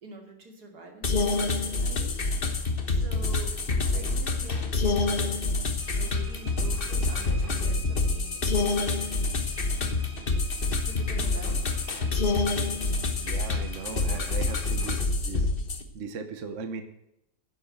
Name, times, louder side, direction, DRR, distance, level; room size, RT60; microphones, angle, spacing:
voice 1, 0.0-2.2 2.9-3.5 3.9-8.9 10.7-11.6, right 2 dB, 90° right, 2 dB, 3.2 m, -45 dB
sound 1, 1.0-15.8, left 3 dB, 40° left, 1.4 m, -27 dB
voice 2, 3.7-4.1 13.2-15.5 15.9-16.8, right 5 dB, 55° right, 9 dB, 1.3 m, -38 dB
sound 2, 5.8-14.9, right 2 dB, 15° right, 2.6 m, -49 dB
11.0 x 7.9 x 7.6 m, 0.82 s
omnidirectional pair, 1.6 m